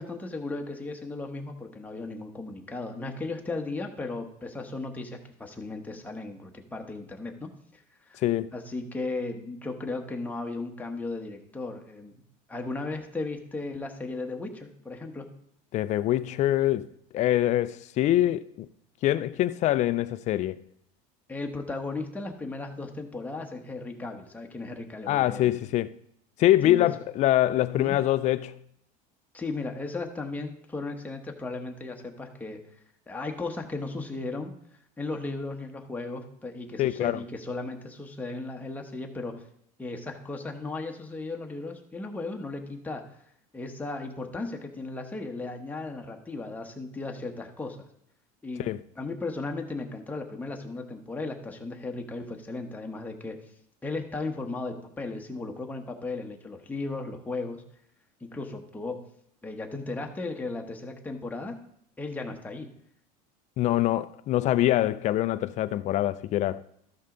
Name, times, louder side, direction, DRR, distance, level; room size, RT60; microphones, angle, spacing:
voice 1, 0.0-7.8 8.1-8.2 8.5-12.2 12.5-15.3 21.3-25.6 26.6-26.9 27.8-28.0 29.3-32.6 33.1-34.5 35.0-39.4 39.8-43.0 43.5-47.9 48.4-48.7 49.0-53.4 53.8-57.6 58.2-59.0 59.4-61.6 62.0-62.7, left 3 dB, 10° left, 1.1 m, -36 dB
voice 2, 15.7-16.9 17.1-18.7 19.0-20.6 25.1-25.9 26.4-28.5 36.8-37.2 48.6-48.8 63.6-66.6, left 14 dB, 40° left, 0.4 m, -24 dB
13.5 x 5.4 x 3.8 m
supercardioid pair, 130°, 19 cm